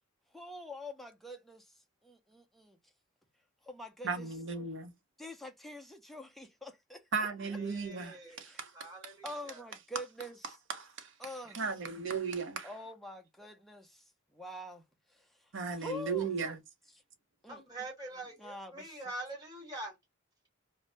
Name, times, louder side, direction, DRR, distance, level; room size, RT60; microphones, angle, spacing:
voice 1, 0.3-2.8 3.6-4.3 5.2-7.3 8.3-8.6 9.2-10.6 11.2-11.6 12.6-14.0 14.3-14.8 15.1-15.5 15.8-16.3 17.4-17.6 18.4-19.0, left 1 dB, ahead, 0.5 m, -45 dB
voice 2, 4.0-4.9 7.1-8.9 10.7-11.1 11.5-12.7 15.5-16.6, right 5 dB, 65° right, 0.7 m, -36 dB
voice 3, 7.4-8.4 8.7-9.6 17.5-19.9, right 2 dB, 20° right, 1.1 m, -44 dB
2.6 x 2.0 x 3.2 m
head